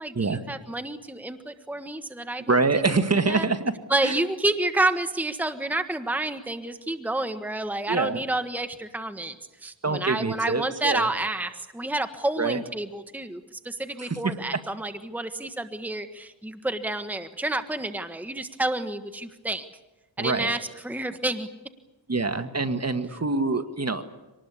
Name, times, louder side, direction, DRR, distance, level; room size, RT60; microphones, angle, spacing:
voice 1, 0.0-3.0 3.3-3.5 3.9-9.3 9.6-19.6 20.2-21.5, right 2 dB, 5° right, 8 dB, 1.4 m, -29 dB
voice 2, 2.5-3.7 4.0-4.2 7.9-8.2 9.8-11.1 12.4-12.6 14.0-14.3 20.2-20.5 22.1-24.1, right 3 dB, 35° right, 8 dB, 1.8 m, -25 dB
25.5 x 19.5 x 8.4 m, 1.1 s
cardioid pair, 75°, 45 cm